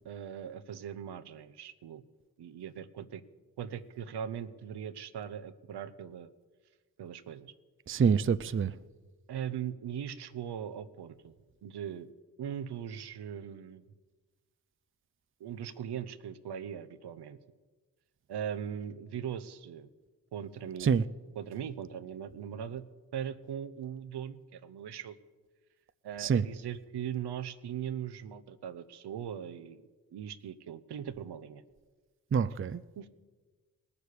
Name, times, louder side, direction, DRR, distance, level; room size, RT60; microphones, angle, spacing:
voice 1, 0.0-2.0 2.4-3.2 3.6-6.3 7.0-7.5 9.3-11.3 11.6-12.1 12.4-13.8 15.4-17.4 18.3-19.9 20.3-21.0 21.4-22.8 23.1-25.1 26.0-29.8 30.1-31.6 33.0-33.1, right 9 dB, 75° right, 0.8 m, -40 dB
voice 2, 7.9-8.7 20.8-21.0 26.2-26.4 32.3-32.8, right 6 dB, 30° right, 0.5 m, -26 dB
18.5 x 6.9 x 8.3 m
cardioid pair, 50°, 40 cm